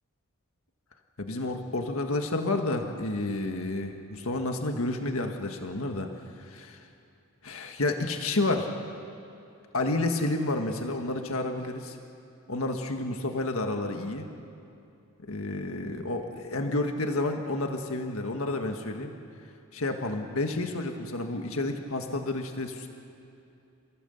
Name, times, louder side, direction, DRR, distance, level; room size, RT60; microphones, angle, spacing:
voice 1, 1.2-6.9 7.4-8.7 9.7-12.0 12.5-14.3 15.2-19.1 19.7-22.9, left 2 dB, 70° left, 4 dB, 1.7 m, -30 dB
28.5 x 16.5 x 8.0 m, 2.7 s
head